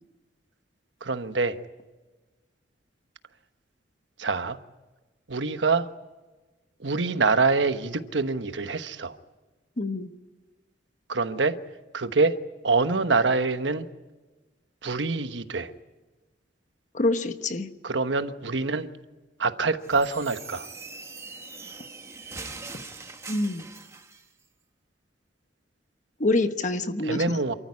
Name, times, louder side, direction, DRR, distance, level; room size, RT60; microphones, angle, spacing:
voice 1, 1.0-1.6 4.2-4.6 5.3-5.9 6.8-9.2 11.1-11.6 11.9-12.4 12.6-13.9 14.8-15.7 17.8-18.9 19.4-20.7 27.0-27.5, right 4 dB, 90° right, 10 dB, 1.2 m, -25 dB
voice 2, 9.8-10.1 16.9-17.7 23.3-23.6 26.2-27.2, left 2 dB, 45° left, 9 dB, 1.2 m, -26 dB
sound 1, 19.8-24.3, right 3 dB, 15° right, 1.2 m, -42 dB
28.5 x 14.0 x 9.8 m, 1.2 s
head